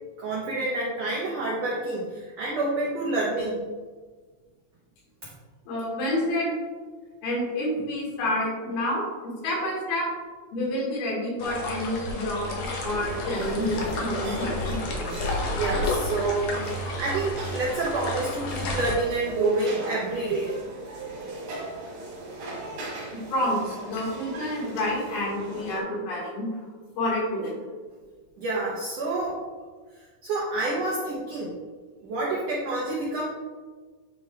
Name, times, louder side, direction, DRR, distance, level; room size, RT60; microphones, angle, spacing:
voice 1, 0.2-3.7 15.5-20.6 28.4-29.4 30.2-31.5 32.0-33.3, right 2 dB, 90° right, -4 dB, 1.4 m, -28 dB
voice 2, 5.7-6.5 7.2-10.1 10.5-14.8 23.1-26.5 27.0-27.6, left 1 dB, 85° left, -4 dB, 3.6 m, -29 dB
sound 1, 11.4-18.9, left 1 dB, 70° left, 1.7 m, -31 dB
sound 2, 12.8-25.8, right 2 dB, 65° right, 3.0 m, -39 dB
9.4 x 3.3 x 3.4 m, 1.4 s
omnidirectional pair, 4.3 m